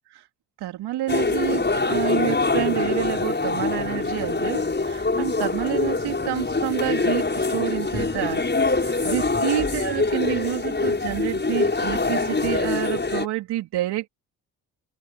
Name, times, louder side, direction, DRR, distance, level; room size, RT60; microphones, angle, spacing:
voice 1, 0.6-8.4 8.8-14.1, right 14 dB, 70° right, 3.2 m, -28 dB
sound 1, 1.1-13.3, left 3 dB, 25° left, 6.7 m, -24 dB
open air
hypercardioid pair, 50°, 41 cm